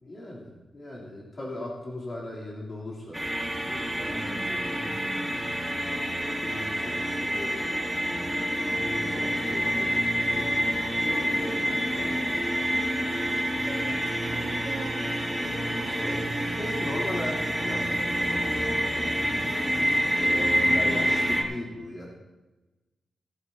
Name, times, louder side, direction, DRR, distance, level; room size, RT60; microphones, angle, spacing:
voice 1, 0.0-3.2 3.7-5.2 6.4-7.7 8.6-10.5 11.0-12.1 16.0-16.3 16.6-19.1 20.3-22.1, left 1 dB, 30° left, -5 dB, 3.1 m, -39 dB
sound 1, 3.1-21.4, equal, ahead, 1.5 m, -27 dB
voice 2, 11.4-11.8 13.7-16.0 20.3-21.2, right 3 dB, 40° right, -3 dB, 3.5 m, -39 dB
16.5 x 14.0 x 2.8 m, 1.1 s
wide cardioid pair, 175°, 0 cm